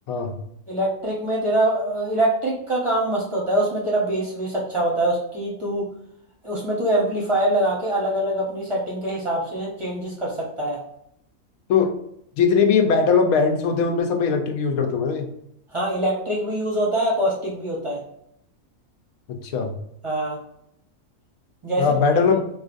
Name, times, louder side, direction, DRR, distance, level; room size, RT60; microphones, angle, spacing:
voice 1, 0.7-5.8 6.4-10.8 15.7-18.0 20.0-20.4 21.6-21.8, right 1 dB, 30° right, -5 dB, 0.7 m, -24 dB
voice 2, 12.4-15.3 19.3-19.8 21.8-22.4, left 5 dB, 75° left, 4 dB, 1.1 m, -20 dB
4.3 x 2.4 x 2.5 m, 0.74 s
omnidirectional pair, 1.5 m